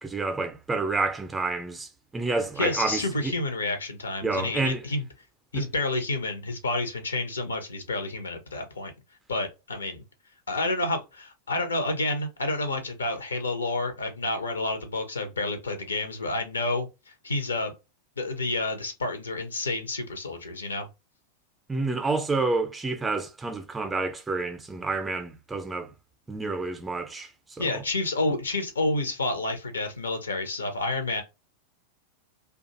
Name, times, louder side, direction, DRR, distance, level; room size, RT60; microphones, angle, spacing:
voice 1, 0.0-3.3 4.2-4.8 5.5-5.6 21.7-25.9 26.3-27.6, right 3 dB, 10° right, 0.5 m, -29 dB
voice 2, 2.6-5.0 5.5-8.9 9.3-10.0 10.5-17.7 18.2-20.9 27.6-31.2, left 2 dB, 75° left, 0.6 m, -29 dB
2.4 x 2.3 x 2.7 m
figure-of-eight pair, 90°, 0 cm